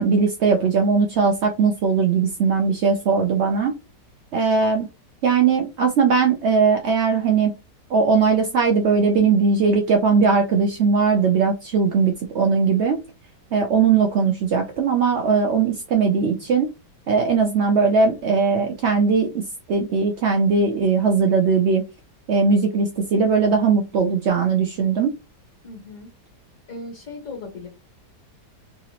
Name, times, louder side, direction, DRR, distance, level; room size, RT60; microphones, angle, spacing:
voice 1, 0.0-3.7 4.3-4.9 5.2-7.5 7.9-13.0 13.5-16.7 17.1-21.8 22.3-25.1, right 5 dB, 75° right, 3 dB, 0.6 m, -19 dB
voice 2, 25.6-26.1 26.7-27.7, left 3 dB, 55° left, 0 dB, 1.9 m, -37 dB
3.7 x 2.4 x 2.8 m, 0.26 s
omnidirectional pair, 1.8 m